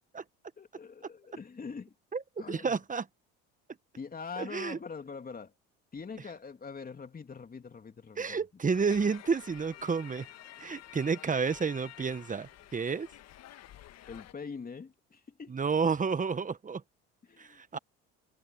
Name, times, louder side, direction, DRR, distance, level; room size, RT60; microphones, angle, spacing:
voice 1, 0.6-1.9 2.4-2.8 4.0-5.5 5.9-8.4 14.1-15.6 17.2-17.8, left 5 dB, 30° left, 3.1 m, -43 dB
voice 2, 2.5-3.0 4.4-4.8 8.2-10.3 10.6-13.1 15.5-16.8 17.4-17.8, right 5 dB, 25° right, 1.5 m, -30 dB
sound 1, 8.7-14.3, left 12 dB, 60° left, 1.6 m, -50 dB
supercardioid pair, 75°, 30 cm